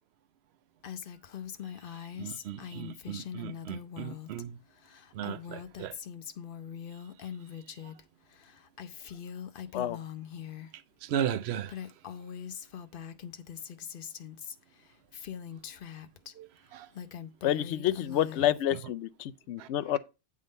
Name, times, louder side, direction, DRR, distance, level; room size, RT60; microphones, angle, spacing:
Female speech woman speaking, 0.8-4.4 4.7-8.0 8.3-10.7 11.3-11.4 11.6-16.3 16.8-18.7, left 8 dB, 60° left, 0.8 m, -42 dB
voice 1, 1.9-4.6 5.1-6.0 7.8-7.9 10.7-11.8 16.3-16.9 19.6-19.7, right 9 dB, 70° right, 0.9 m, -36 dB
voice 2, 17.4-20.0, left 12 dB, 85° left, 0.9 m, -29 dB
9.4 x 3.8 x 5.2 m
omnidirectional pair, 1.1 m